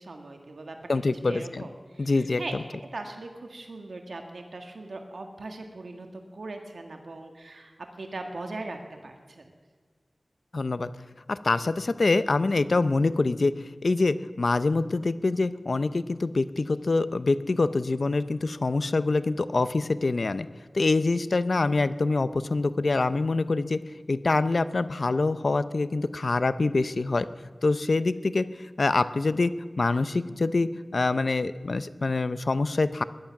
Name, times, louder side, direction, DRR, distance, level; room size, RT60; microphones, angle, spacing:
voice 1, 0.0-0.8 1.2-2.5 2.9-9.5, right 2 dB, 80° right, 4 dB, 1.7 m, -40 dB
voice 2, 0.9-1.6 2.0-2.6 10.5-10.9 11.3-13.5 13.8-20.5 20.7-23.8 24.1-27.3 27.6-28.4 28.8-33.0, left 3 dB, 70° left, 14 dB, 0.6 m, -25 dB
19.0 x 11.5 x 5.9 m, 1.5 s
wide cardioid pair, 50°, 0 cm